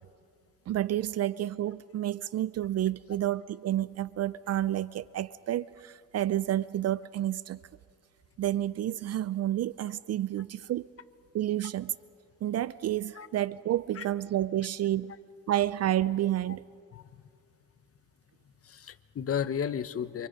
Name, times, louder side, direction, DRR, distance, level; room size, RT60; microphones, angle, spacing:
voice 1, 0.7-7.6 8.4-10.9 11.3-11.9 12.4-15.2 15.5-16.7, right 12 dB, 55° right, 18 dB, 0.5 m, -30 dB
voice 2, 16.9-17.2 18.6-20.3, left 8 dB, 50° left, 13 dB, 1.1 m, -33 dB
27.5 x 26.5 x 5.4 m, 2.2 s
cardioid pair, 90°, 30 cm